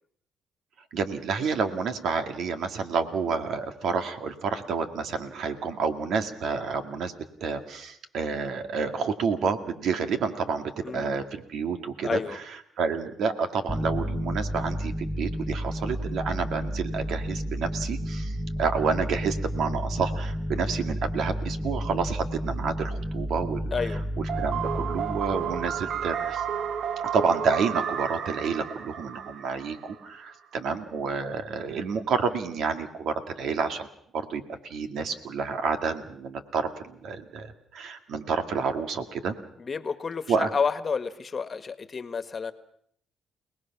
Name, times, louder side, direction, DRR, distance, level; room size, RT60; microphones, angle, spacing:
voice 1, 0.9-7.1 7.4-12.2 12.8-23.7 24.4-26.4 27.1-33.9 34.1-39.4 40.3-40.5, right 5 dB, 75° right, 7 dB, 2.1 m, -29 dB
voice 2, 10.8-11.2 12.0-12.4 23.7-24.0 39.6-42.5, left 5 dB, 40° left, 11 dB, 1.6 m, -30 dB
sound 1, 13.7-26.9, equal, ahead, 1.0 m, -32 dB
sound 2, 24.3-30.1, right 8 dB, 60° right, 0.8 m, -32 dB
29.0 x 19.5 x 6.0 m, 0.65 s
cardioid pair, 90°, 0 cm